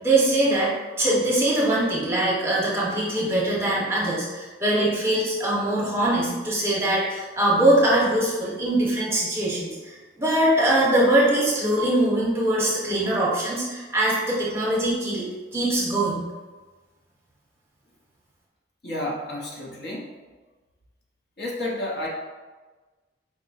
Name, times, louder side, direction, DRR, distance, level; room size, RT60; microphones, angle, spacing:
voice 1, 0.0-15.3 15.5-16.2, right 1 dB, 15° right, -6 dB, 0.9 m, -22 dB
voice 2, 18.8-20.2 21.4-22.1, left 1 dB, 55° left, -3 dB, 0.7 m, -31 dB
4.8 x 2.0 x 4.0 m, 1.3 s
head